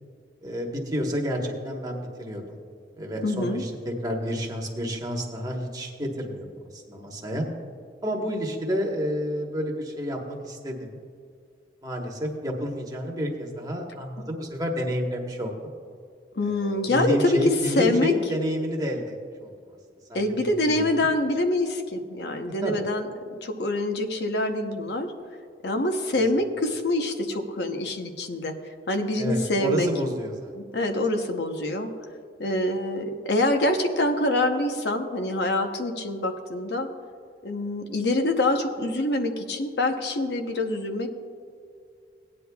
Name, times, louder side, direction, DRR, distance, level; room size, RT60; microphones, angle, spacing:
voice 1, 0.4-2.6 3.0-6.5 6.7-7.5 8.0-11.0 11.8-15.5 16.4-19.5 20.1-21.0 22.6-22.7 29.2-30.5, equal, 20° right, 0 dB, 1.2 m, -30 dB
voice 2, 3.2-3.6 16.3-17.4 17.8-18.1 20.1-25.1 25.6-28.5 28.9-29.9 30.6-31.9 32.4-36.9 37.4-41.1, left 1 dB, 70° left, 5 dB, 0.8 m, -25 dB
17.5 x 9.8 x 2.3 m, 2.3 s
head